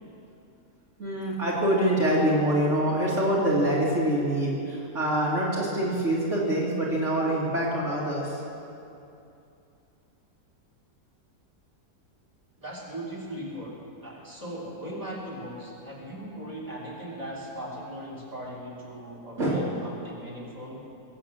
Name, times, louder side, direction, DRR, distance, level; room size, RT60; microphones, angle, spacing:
voice 1, 1.0-8.4 19.4-19.7, right 1 dB, 50° right, -6 dB, 2.6 m, -25 dB
voice 2, 12.5-20.8, right 1 dB, 10° right, -5 dB, 3.3 m, -39 dB
22.0 x 8.3 x 7.7 m, 2.7 s
omnidirectional pair, 1.7 m